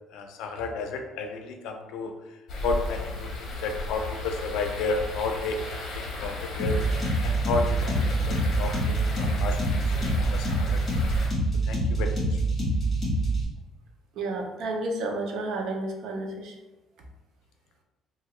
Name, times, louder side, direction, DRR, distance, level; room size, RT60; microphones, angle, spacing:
voice 1, 0.1-5.6 5.9-6.8 7.2-10.9 11.7-12.4, left 3 dB, 80° left, 5 dB, 0.4 m, -32 dB
sound 1, 2.5-11.3, left 2 dB, 55° left, 0.7 m, -34 dB
sound 2, 6.6-13.4, right 2 dB, 25° left, 1.4 m, -26 dB
voice 2, 14.2-16.6, right 2 dB, 55° right, 2 dB, 0.5 m, -31 dB
2.8 x 2.4 x 3.0 m, 1.1 s
cardioid pair, 155°, 0 cm